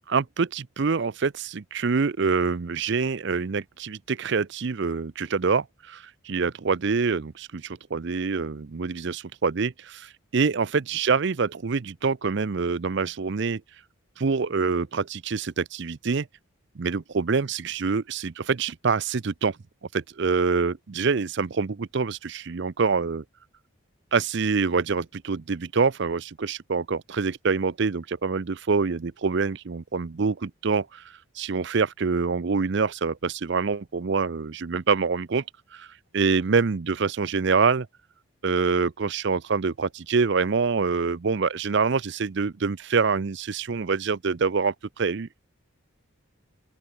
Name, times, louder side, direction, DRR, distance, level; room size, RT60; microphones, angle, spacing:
voice 1, 0.1-13.6 14.2-16.3 16.8-19.6 19.9-23.2 24.1-31.0 31.4-35.4 35.7-35.9 36.1-37.9 38.4-45.4, right 5 dB, 55° right, 0.5 m, -25 dB
open air
head